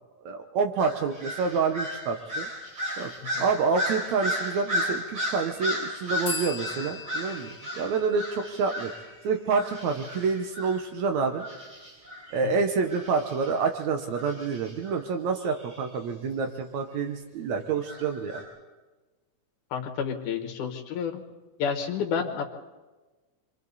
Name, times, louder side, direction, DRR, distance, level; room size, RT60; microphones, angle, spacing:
voice 1, 0.2-2.5 3.0-3.1 3.4-8.9 9.2-11.4 12.3-18.4, right 5 dB, 70° right, 5 dB, 2.2 m, -28 dB
sound 1, 0.8-9.1 9.5-10.9 11.4-13.6 14.1-15.0 15.4-15.9 17.8-18.4, left 1 dB, 50° right, 7.4 m, -34 dB
sound 2, 6.2-9.8, left 3 dB, 25° left, 1.9 m, -40 dB
voice 2, 19.7-21.2 21.6-22.4, left 6 dB, 80° left, 3 dB, 2.8 m, -29 dB
28.0 x 24.0 x 4.1 m, 1.2 s
omnidirectional pair, 3.5 m